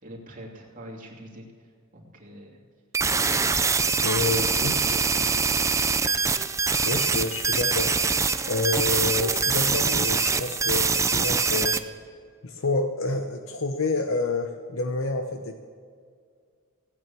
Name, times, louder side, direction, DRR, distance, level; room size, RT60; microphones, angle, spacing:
voice 1, 0.0-2.6 3.8-5.4, equal, 40° right, -1 dB, 2.7 m, -44 dB
sound 1, 2.9-11.8, right 5 dB, 15° right, 0.5 m, -24 dB
voice 2, 4.0-4.9 6.8-11.8 12.4-15.6, left 3 dB, 65° left, 6 dB, 0.8 m, -28 dB
17.0 x 9.2 x 6.9 m, 2.1 s
head